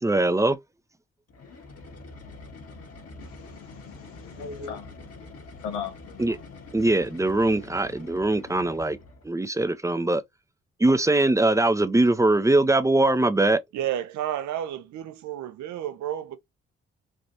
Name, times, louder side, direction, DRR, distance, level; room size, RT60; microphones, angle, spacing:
voice 1, 0.0-0.6 6.2-6.4 6.7-9.0 9.2-10.2 10.8-13.6, right 2 dB, 10° right, 0.5 m, -21 dB
sound 1, 1.3-9.3, left 3 dB, 55° left, 1.3 m, -45 dB
voice 2, 3.2-4.9 5.6-6.4, left 6 dB, 90° left, 0.9 m, -38 dB
voice 3, 13.7-16.4, right 11 dB, 70° right, 0.7 m, -31 dB
3.3 x 2.5 x 2.7 m
hypercardioid pair, 45°, 30 cm